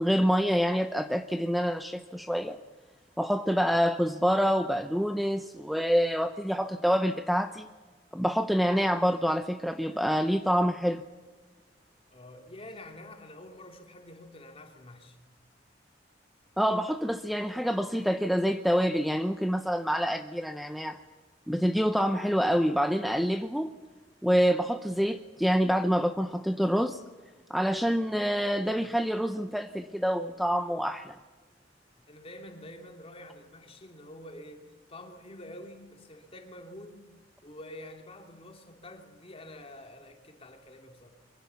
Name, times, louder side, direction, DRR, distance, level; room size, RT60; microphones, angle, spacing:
voice 1, 0.0-2.6 3.2-7.7 8.1-11.0 16.6-21.0 21.5-23.7 24.2-27.0 27.5-31.2, equal, ahead, 8 dB, 0.7 m, -27 dB
voice 2, 12.1-15.2 32.1-37.0 37.4-41.1, left 1 dB, 30° left, 3 dB, 3.1 m, -47 dB
24.0 x 23.0 x 7.1 m, 1.4 s
head